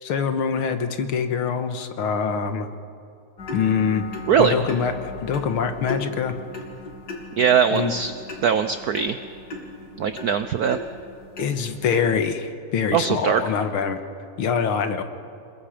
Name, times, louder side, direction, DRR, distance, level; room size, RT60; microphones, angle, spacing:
voice 1, 0.0-2.7 3.5-4.0 4.4-6.3 7.7-7.9 11.4-14.0 14.4-15.0, left 6 dB, 75° left, 8 dB, 2.1 m, -24 dB
sound 1, 3.4-12.2, left 3 dB, 50° left, 3.3 m, -37 dB
voice 2, 7.4-8.1 8.4-9.2 10.0-10.8 12.9-13.4, right 7 dB, 75° right, 10 dB, 0.8 m, -20 dB
28.0 x 21.5 x 5.1 m, 2.5 s
omnidirectional pair, 2.4 m